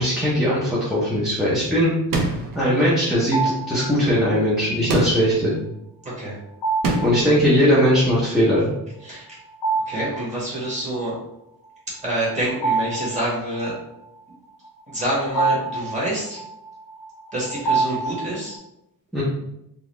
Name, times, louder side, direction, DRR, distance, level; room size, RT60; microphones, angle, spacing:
voice 1, 0.0-1.9 2.5-5.5 7.0-8.7 19.1-19.2, equal, ahead, -8 dB, 0.6 m, -19 dB
sound 1, 2.1-2.7 4.9-5.4 6.8-7.3, right 2 dB, 55° right, 0.6 m, -24 dB
sound 2, 3.3-3.9 6.6-7.3 9.5-10.3 10.6-10.7 12.1-13.7 14.6-18.6, right 4 dB, 90° left, 1.2 m, -26 dB
voice 2, 9.0-9.4 9.9-11.1 12.0-13.7 14.9-16.4 17.3-18.6, right 1 dB, 20° right, -7 dB, 1.4 m, -27 dB
3.8 x 2.4 x 3.1 m, 0.82 s
wide cardioid pair, 165°, 40 cm